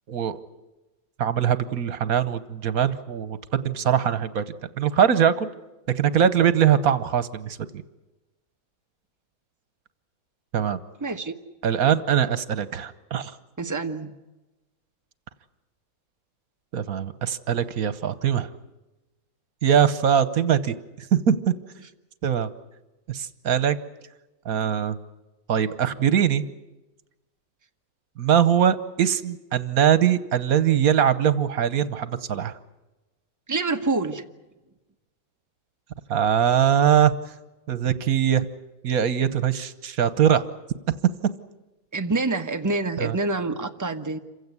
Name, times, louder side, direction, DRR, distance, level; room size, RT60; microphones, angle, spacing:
voice 1, 0.1-0.4 1.2-4.4 4.8-5.5 5.9-7.6 10.5-10.8 11.6-13.3 16.7-18.5 19.6-20.7 21.1-21.5 22.2-22.5 23.1-23.8 24.4-25.0 25.5-26.4 28.2-32.6 36.1-37.1 37.7-38.5 38.8-40.4 43.0-43.2, right 8 dB, 75° right, 14 dB, 1.5 m, -22 dB
voice 2, 11.0-11.4 13.6-14.1 33.5-34.2 41.9-44.2, right 3 dB, 15° right, 5 dB, 1.2 m, -26 dB
27.5 x 16.5 x 9.7 m, 1.1 s
omnidirectional pair, 1.5 m